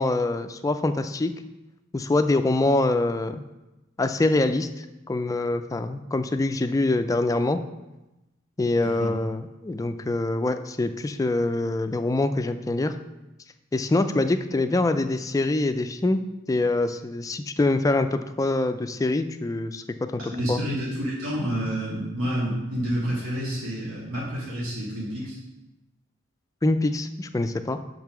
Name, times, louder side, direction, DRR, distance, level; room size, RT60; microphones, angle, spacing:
voice 1, 0.0-1.3 1.9-3.4 4.0-7.6 8.6-12.9 13.7-16.2 16.5-20.6 26.6-27.8, left 2 dB, 15° left, 9 dB, 0.3 m, -24 dB
voice 2, 20.2-25.4, equal, 85° right, -6 dB, 2.1 m, -29 dB
5.6 x 5.5 x 5.9 m, 1.0 s
head